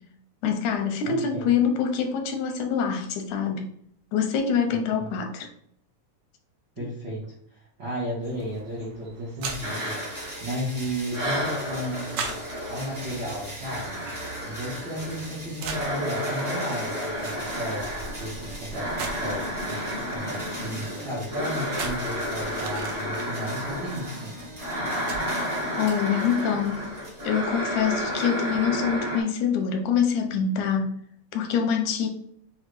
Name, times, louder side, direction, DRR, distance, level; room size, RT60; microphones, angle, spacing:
voice 1, 0.4-3.7 4.1-5.5 25.8-26.9 27.2-30.9 31.3-32.1, left 7 dB, 85° left, 5 dB, 2.1 m, -25 dB
voice 2, 1.0-1.5 4.7-5.1 6.8-12.3 12.7-14.1 14.4-24.3, equal, 65° right, -7 dB, 1.1 m, -34 dB
sound 1, 8.2-28.2, right 5 dB, 85° right, 1.3 m, -42 dB
sound 2, 9.5-28.8, right 1 dB, 20° right, 0.4 m, -42 dB
sound 3, 9.6-10.8 11.1-29.2, equal, 45° right, 0.9 m, -32 dB
6.2 x 2.1 x 3.1 m, 0.66 s
omnidirectional pair, 3.4 m